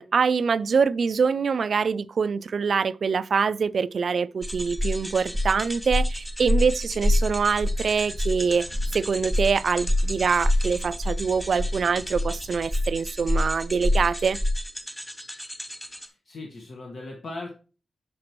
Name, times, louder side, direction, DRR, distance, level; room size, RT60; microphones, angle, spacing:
voice 1, 0.0-8.7 8.9-14.4, right 5 dB, 60° right, 0.3 m, -24 dB
sound 1, 4.4-16.1, left 1 dB, 5° left, 0.9 m, -27 dB
sound 2, 7.0-12.7, equal, 90° left, 3.5 m, -46 dB
voice 2, 15.9-17.6, left 2 dB, 65° left, 1.3 m, -39 dB
8.7 x 6.0 x 3.0 m
wide cardioid pair, 160°, 0 cm